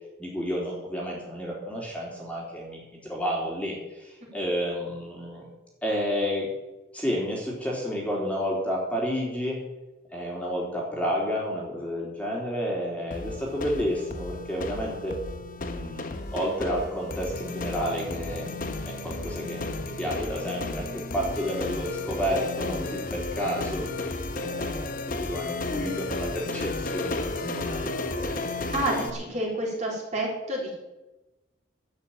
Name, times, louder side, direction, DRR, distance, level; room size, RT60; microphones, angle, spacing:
voice 1, 0.2-5.5 5.8-6.5 6.9-9.6 10.1-15.2 15.6-18.5 18.8-28.4, equal, 5° left, -4 dB, 3.5 m, -31 dB
sound 1, 13.1-29.1, left 2 dB, 45° left, 1.0 m, -33 dB
voice 2, 28.7-30.7, right 1 dB, 35° right, -3 dB, 4.0 m, -29 dB
12.0 x 8.2 x 8.7 m, 1.0 s
head